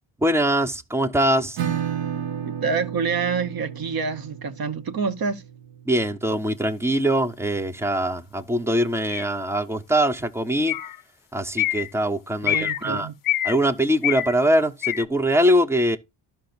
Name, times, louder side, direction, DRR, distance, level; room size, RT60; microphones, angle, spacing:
voice 1, 0.2-1.6 5.9-10.8 11.3-13.1 13.4-16.0, equal, 5° right, 0.4 m, -22 dB
Acoustic guitar / Strum, 1.6-7.0, right 9 dB, 65° right, 1.2 m, -33 dB
voice 2, 2.6-5.4 12.4-13.1, right 5 dB, 50° right, 1.0 m, -27 dB
sound 1, 9.1-9.2 10.7-11.0 11.6-11.9 12.4-12.8 13.2-13.5 14.0-14.4 14.8-15.0, left 13 dB, 45° left, 0.5 m, -25 dB
13.5 x 5.7 x 2.5 m
cardioid pair, 165°, 47 cm